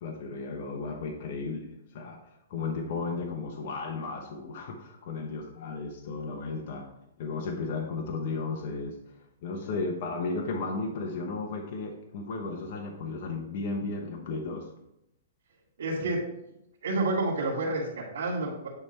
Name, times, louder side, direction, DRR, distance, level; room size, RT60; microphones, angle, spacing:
voice 1, 0.0-1.7 1.9-2.2 2.5-6.8 7.2-8.9 9.4-14.6, left 3 dB, 50° left, 1 dB, 1.1 m, -34 dB
voice 2, 15.8-16.2 16.8-18.7, right 2 dB, 80° right, -7 dB, 2.1 m, -29 dB
9.7 x 3.6 x 4.3 m, 0.83 s
hypercardioid pair, 150°, 0 cm